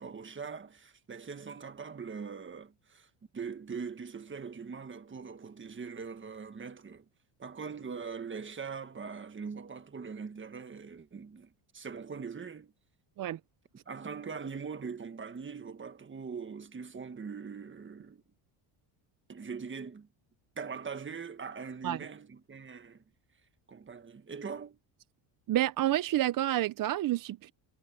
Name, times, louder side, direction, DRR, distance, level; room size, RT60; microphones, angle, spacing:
voice 1, 0.0-3.1 3.3-7.0 7.4-12.7 13.9-18.2 19.3-20.1 20.6-23.0 23.7-24.8, right 5 dB, 25° right, 1.6 m, -42 dB
voice 2, 25.5-27.5, right 13 dB, 45° right, 0.6 m, -29 dB
cardioid pair, 125°, 49 cm